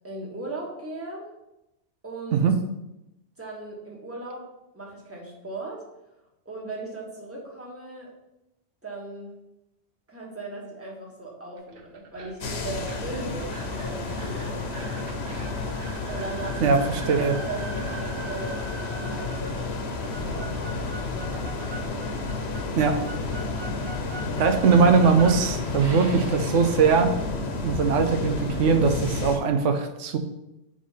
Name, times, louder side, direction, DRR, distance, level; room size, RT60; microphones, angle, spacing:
voice 1, 0.0-1.3 2.0-2.5 3.4-4.5 4.7-5.8 6.4-8.1 8.8-9.3 10.1-14.6 16.1-20.9, right 2 dB, 10° right, -3 dB, 1.3 m, -38 dB
sound 1, 11.6-26.6, right 2 dB, 55° right, 1.0 m, -42 dB
sound 2, 12.4-29.4, left 3 dB, 65° left, 1.0 m, -31 dB
voice 2, 16.6-17.3 22.8-23.0 24.4-27.1 27.6-30.2, right 5 dB, 90° right, 7 dB, 1.0 m, -21 dB
4.9 x 3.8 x 5.6 m, 0.91 s
omnidirectional pair, 1.2 m